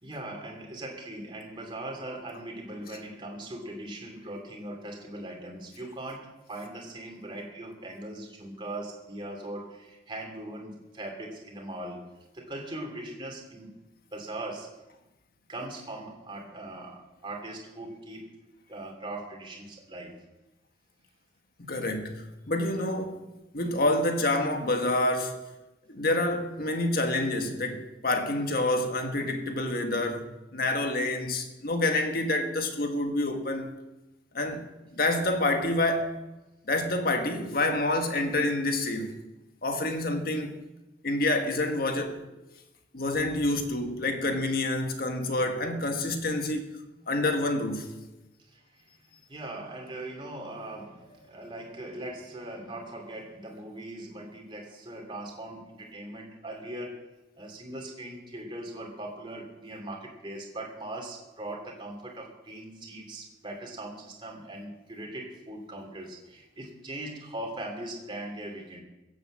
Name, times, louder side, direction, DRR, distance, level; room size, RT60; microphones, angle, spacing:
voice 1, 0.0-13.8 14.1-14.8 15.5-18.3 18.7-20.2 48.5-48.9 49.3-57.1 57.4-68.8, right 1 dB, 25° right, 2.6 m, -40 dB
voice 2, 21.6-23.2 23.5-25.4 25.9-33.7 34.3-36.1 36.7-39.2 39.6-40.6 41.0-42.3 42.9-46.8 47.1-47.9, left 2 dB, 55° left, 1.7 m, -28 dB
16.0 x 7.8 x 7.5 m
head